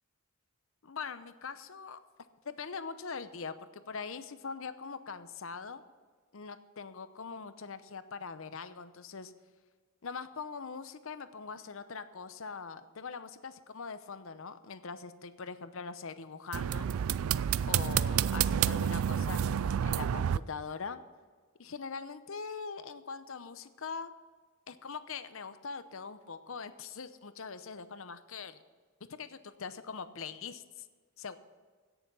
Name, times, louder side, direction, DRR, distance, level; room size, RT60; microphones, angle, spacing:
voice 1, 0.8-2.0 2.4-5.8 6.3-9.3 10.0-16.9 17.7-21.0 21.6-24.1 24.7-28.6 29.0-30.9 31.2-31.4, left 5 dB, 65° left, 12 dB, 0.8 m, -42 dB
sound 1, 16.5-20.4, right 9 dB, 70° right, 0.3 m, -29 dB
16.5 x 7.0 x 5.6 m, 1.5 s
head